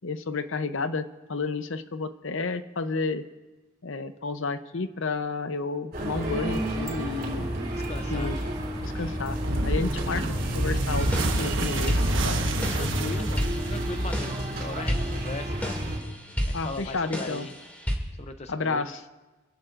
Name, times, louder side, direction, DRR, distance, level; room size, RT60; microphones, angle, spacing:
voice 1, 0.0-3.2 3.8-7.5 8.1-8.4 8.8-9.4 9.6-10.2 10.5-12.5 16.5-17.5 18.5-19.0, left 3 dB, 65° left, 10 dB, 0.7 m, -31 dB
sound 1, 5.9-16.0, equal, 45° right, 4.9 m, -31 dB
voice 2, 7.7-8.4 10.2-10.5 12.7-15.8 16.5-17.5 18.2-19.0, left 3 dB, 30° left, 8 dB, 0.5 m, -39 dB
sound 2, 9.4-14.5, right 2 dB, 60° right, 1.2 m, -28 dB
sound 3, 11.0-17.9, equal, 10° left, 2.4 m, -33 dB
28.0 x 15.5 x 2.5 m, 1.2 s
head